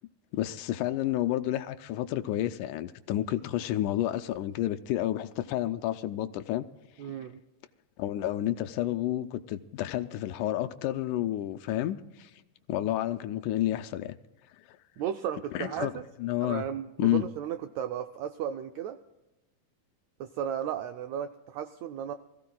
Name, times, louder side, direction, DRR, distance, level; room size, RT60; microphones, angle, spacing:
voice 1, 0.3-6.7 8.0-12.3 12.7-14.2 15.5-15.9 16.2-16.6 17.0-17.2, left 13 dB, 80° left, 8 dB, 2.0 m, -30 dB
voice 2, 7.0-7.4 15.0-16.0 16.4-19.0 20.2-22.1, right 9 dB, 85° right, 8 dB, 1.6 m, -34 dB
24.5 x 15.5 x 2.3 m, 1.0 s
omnidirectional pair, 3.8 m